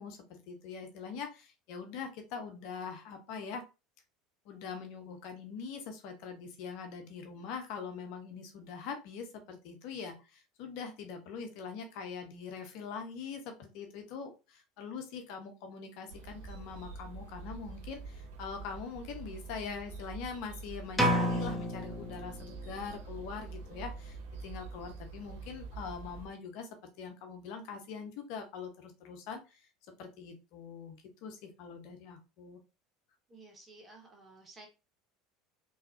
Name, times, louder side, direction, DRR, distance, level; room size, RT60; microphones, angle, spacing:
voice 1, 0.0-3.6 4.4-29.7 30.0-32.6, left 5 dB, 65° left, 5 dB, 1.0 m, -43 dB
sound 1, 16.1-26.3, right 4 dB, 75° right, 1.1 m, -46 dB
sound 2, 21.0-22.9, equal, 5° left, 1.0 m, -31 dB
voice 2, 33.3-34.7, right 2 dB, 25° right, 0 dB, 1.8 m, -54 dB
4.0 x 3.2 x 2.7 m, 0.29 s
hypercardioid pair, 85°, 0 cm